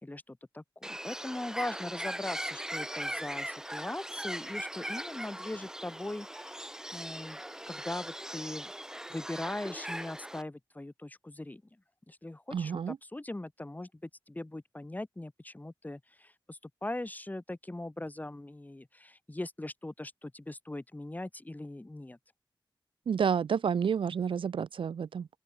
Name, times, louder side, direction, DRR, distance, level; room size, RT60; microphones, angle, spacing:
voice 1, 0.0-7.4 7.7-8.7 9.1-11.6 12.1-22.2, left 1 dB, 20° left, 2.7 m, -40 dB
Bird, 0.8-10.4, right 1 dB, 5° right, 1.3 m, -40 dB
voice 2, 12.5-13.0 23.1-25.3, right 7 dB, 75° right, 0.4 m, -30 dB
open air
wide cardioid pair, 100°, 9 cm